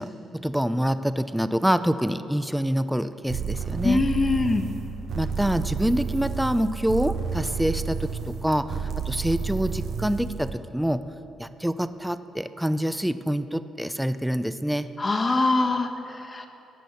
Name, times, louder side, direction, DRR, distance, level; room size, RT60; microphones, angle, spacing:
voice 1, 0.0-4.0 5.1-11.0 11.4-14.9, equal, 5° right, 12 dB, 0.5 m, -26 dB
sound 1, 3.3-10.6, right 6 dB, 60° right, 1.1 m, -31 dB
voice 2, 3.8-4.6 15.0-16.5, left 3 dB, 30° left, 4 dB, 1.2 m, -23 dB
15.5 x 9.9 x 7.0 m, 3.0 s
cardioid pair, 90°, 0 cm